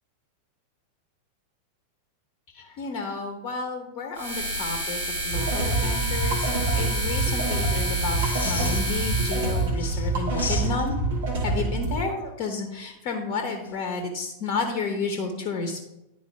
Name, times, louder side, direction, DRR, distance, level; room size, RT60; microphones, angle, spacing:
voice 1, 2.5-11.0 11.4-15.8, left 4 dB, 40° left, 4 dB, 0.9 m, -31 dB
sound 1, 4.1-9.7, right 1 dB, 80° right, 2.2 m, -30 dB
sound 2, 5.3-12.0, right 2 dB, 55° right, 1.5 m, -26 dB
sound 3, 8.1-9.3 9.7-11.1 13.6-14.0, left 4 dB, 70° left, 0.7 m, -37 dB
11.0 x 4.1 x 3.5 m, 0.91 s
figure-of-eight pair, 90°, 0 cm